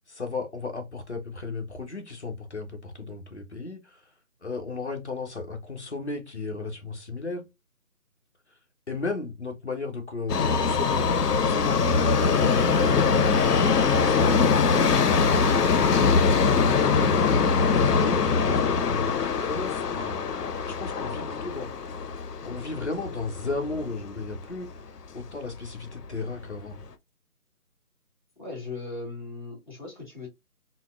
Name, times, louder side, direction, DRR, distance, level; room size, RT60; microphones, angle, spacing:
voice 1, 0.1-4.1 4.4-7.5 8.9-11.1 11.4-15.5 15.8-17.2 17.7-20.3 20.6-21.7 22.5-24.7 25.1-26.8, left 3 dB, 45° left, 0.7 m, -35 dB
Subway metro underground, 10.3-24.4 24.7-24.8 25.7-25.8 26.0-26.1 26.8-26.9, left 5 dB, 90° left, 0.6 m, -23 dB
voice 2, 28.4-30.3, left 3 dB, 30° left, 1.0 m, -38 dB
4.0 x 2.0 x 2.3 m
figure-of-eight pair, 175°, 46 cm